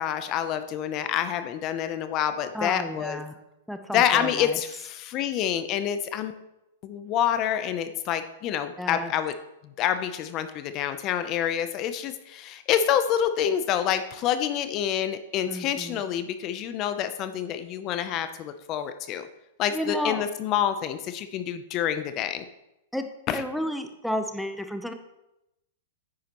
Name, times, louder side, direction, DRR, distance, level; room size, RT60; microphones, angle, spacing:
voice 1, 0.0-3.2 3.9-6.3 6.8-9.3 9.8-19.3 19.6-22.4 23.3-23.4, left 10 dB, 35° left, 10 dB, 0.6 m, -27 dB
voice 2, 2.5-3.4 3.7-4.6 8.8-9.1 15.5-16.0 19.7-20.2 22.9-24.9, equal, ahead, 7 dB, 0.7 m, -32 dB
9.6 x 9.2 x 3.0 m, 0.90 s
hypercardioid pair, 130°, 0 cm